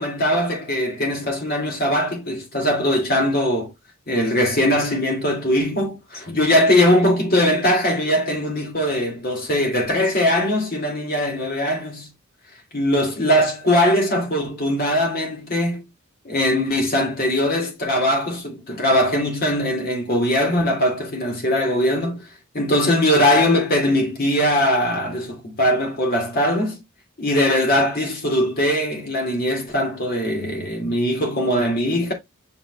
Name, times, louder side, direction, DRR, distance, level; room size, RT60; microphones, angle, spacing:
voice 1, 0.0-3.7 4.1-12.1 12.7-15.8 16.2-22.2 22.5-26.8 27.2-32.1, left 1 dB, 45° left, 2.5 m, -20 dB
7.7 x 5.4 x 2.3 m
head